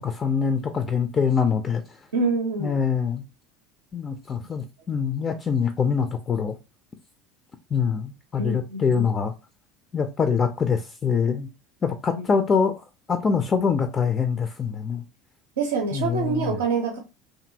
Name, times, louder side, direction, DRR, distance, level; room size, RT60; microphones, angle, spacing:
voice 1, 0.0-2.0 2.6-3.2 3.9-6.6 7.7-9.3 9.9-11.5 11.8-15.0 15.9-16.6, left 6 dB, 30° left, 0.3 m, -24 dB
voice 2, 2.1-2.8 8.4-9.1 12.1-12.3 15.6-17.0, right 4 dB, 70° right, 0.5 m, -26 dB
2.7 x 2.5 x 2.6 m
figure-of-eight pair, 70°, 0 cm